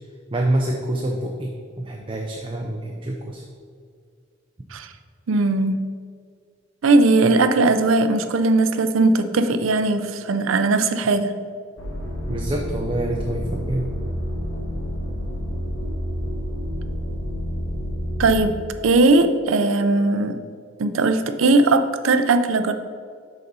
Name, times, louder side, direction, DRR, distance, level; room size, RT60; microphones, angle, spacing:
voice 1, 0.3-3.4 12.3-13.9, right 1 dB, 25° right, 0 dB, 0.5 m, -26 dB
voice 2, 5.3-5.8 6.8-11.3 18.2-18.6 18.8-20.4 20.8-22.7, right 2 dB, 80° right, 9 dB, 0.5 m, -18 dB
sound 1, 11.8-18.5, equal, 85° left, 1.6 m, -29 dB
6.7 x 4.0 x 5.4 m, 2.2 s
head